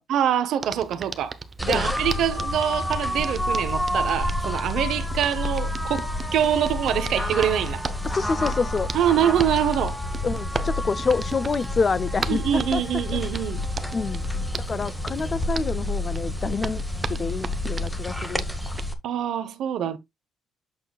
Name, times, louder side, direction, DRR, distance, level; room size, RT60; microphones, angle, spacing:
voice 1, 0.1-1.4 1.6-7.8 8.9-10.0 12.3-13.6 19.0-20.0, right 9 dB, 55° right, 0.9 m, -25 dB
Hands, 0.6-18.9, right 4 dB, 20° right, 0.7 m, -38 dB
sound 1, 1.6-18.9, left 1 dB, ahead, 1.1 m, -29 dB
voice 2, 8.1-8.9 10.2-12.8 13.9-14.3 14.7-16.8 17.1-18.4, left 4 dB, 25° left, 0.5 m, -27 dB
8.3 x 6.5 x 2.3 m
cardioid pair, 170°, 0 cm